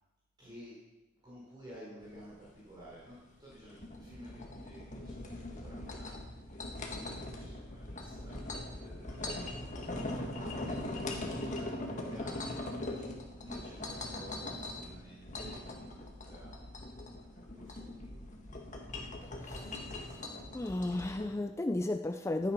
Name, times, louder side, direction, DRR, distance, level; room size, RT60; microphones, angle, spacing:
voice 1, 0.4-0.8 1.2-6.2 6.5-6.6 7.1-8.3 8.7-16.7 17.3-18.2, equal, 20° right, 4.4 m, -53 dB
sound 1, 2.0-21.3, left 1 dB, 35° left, 1.7 m, -41 dB
voice 2, 19.2-20.2 20.5-22.5, left 2 dB, 15° left, 0.3 m, -35 dB
12.5 x 9.3 x 5.8 m
head